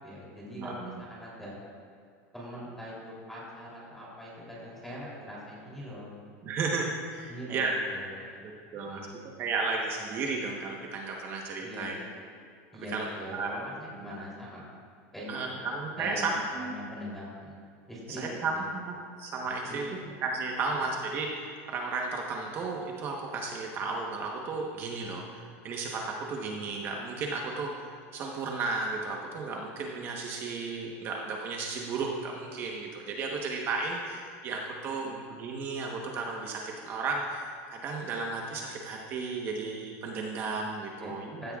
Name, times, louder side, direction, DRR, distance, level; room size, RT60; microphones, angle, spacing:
voice 1, 0.0-1.5 2.3-6.2 7.3-8.4 8.7-9.1 11.6-12.0 12.7-14.6 15.1-15.6 16.0-16.3 16.6-17.6 17.9-18.7 19.6-19.9 34.9-35.1 40.9-41.6, equal, 5° left, -6 dB, 3.3 m, -42 dB
voice 2, 0.6-0.9 6.4-7.7 8.4-9.0 9.4-12.0 12.9-13.5 14.0-14.2 15.3-16.7 18.2-19.8 20.2-27.7 28.1-41.6, right 4 dB, 35° right, 0 dB, 1.1 m, -34 dB
16.0 x 14.0 x 2.4 m, 2.2 s
supercardioid pair, 155°, 7 cm